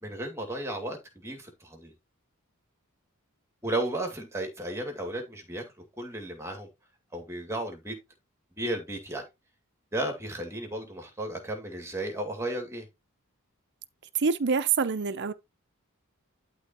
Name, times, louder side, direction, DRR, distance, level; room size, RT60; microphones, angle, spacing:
voice 1, 0.0-1.9 3.6-5.6 6.0-6.7 7.1-8.0 8.6-9.3 9.9-12.9, right 1 dB, 15° right, 2.2 m, -34 dB
voice 2, 14.2-15.3, right 5 dB, 50° right, 0.6 m, -26 dB
12.0 x 4.0 x 3.0 m
head